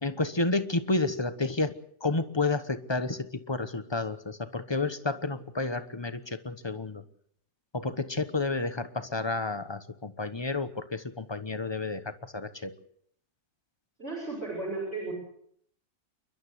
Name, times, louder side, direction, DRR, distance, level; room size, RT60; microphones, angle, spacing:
voice 1, 0.0-1.7 2.0-7.0 7.7-12.7, left 3 dB, 20° left, 11 dB, 0.8 m, -30 dB
voice 2, 14.0-15.1, right 3 dB, 35° right, -4 dB, 6.8 m, -34 dB
29.0 x 12.0 x 8.1 m, 0.66 s
omnidirectional pair, 1.9 m